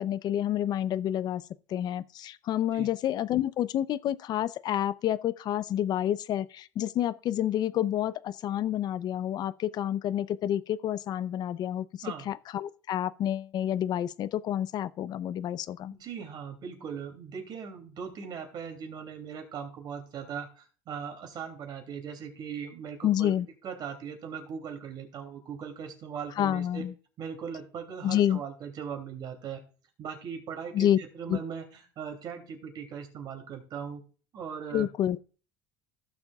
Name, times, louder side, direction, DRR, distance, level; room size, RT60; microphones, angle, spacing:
voice 1, 0.0-1.4 1.7-11.9 12.3-15.9 23.0-23.5 26.4-26.9 28.0-28.4 30.7-31.0 31.3-31.4 34.7-35.2, left 11 dB, 45° left, 0.5 m, -29 dB
voice 2, 15.9-23.3 23.6-26.9 27.2-29.6 30.0-34.0 34.3-34.9, right 7 dB, 45° right, 2.8 m, -39 dB
15.5 x 6.9 x 2.3 m
cardioid pair, 125°, 10 cm